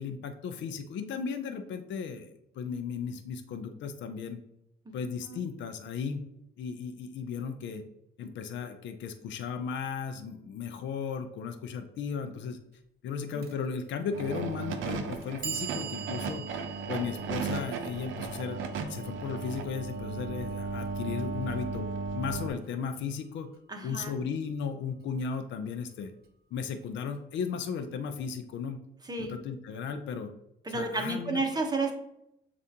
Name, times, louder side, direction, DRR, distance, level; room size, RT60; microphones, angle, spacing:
voice 1, 0.0-2.3 2.6-4.4 4.9-6.2 6.6-7.8 8.2-12.6 13.0-21.9 22.1-23.5 23.8-26.1 26.5-28.8 29.2-30.3 30.7-31.4, left 6 dB, 65° left, 7 dB, 0.5 m, -35 dB
Clock, 13.4-13.5 14.5-14.6 15.1-21.2, right 9 dB, 50° right, 0.8 m, -43 dB
sound 1, 14.1-22.5, right 4 dB, 80° right, 0.6 m, -35 dB
voice 2, 23.7-24.1 29.0-29.3 30.6-31.9, right 3 dB, 20° right, 3 dB, 0.9 m, -31 dB
6.9 x 2.5 x 2.8 m, 0.80 s
cardioid pair, 90°, 20 cm